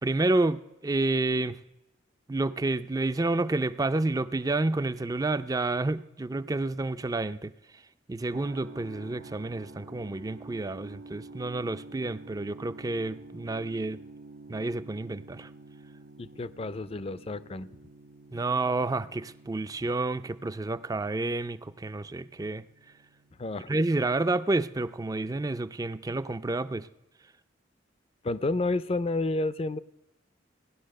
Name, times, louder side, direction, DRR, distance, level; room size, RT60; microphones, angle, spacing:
voice 1, 0.0-1.6 2.3-7.5 8.1-14.0 14.5-15.5 18.3-22.7 23.7-26.9, right 2 dB, 20° right, 14 dB, 0.4 m, -29 dB
sound 1, 8.3-24.3, right 2 dB, 85° right, 0.9 m, -49 dB
voice 2, 16.2-17.7 23.4-23.7 28.2-29.8, left 2 dB, 35° left, 16 dB, 0.5 m, -30 dB
17.0 x 11.0 x 6.5 m, 0.93 s
head